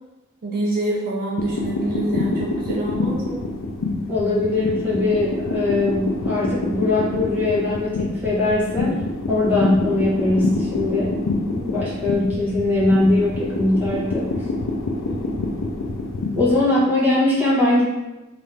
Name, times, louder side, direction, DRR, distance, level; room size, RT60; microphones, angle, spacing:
voice 1, 0.4-3.4 15.1-15.5, right 1 dB, 45° right, -4 dB, 0.4 m, -27 dB
sound 1, 1.4-16.6, left 2 dB, 80° left, 0.4 m, -26 dB
voice 2, 4.1-9.0 9.3-11.2 11.5-14.5 16.3-17.8, left 2 dB, 10° right, -8 dB, 0.8 m, -21 dB
2.6 x 2.4 x 3.2 m, 1.0 s
head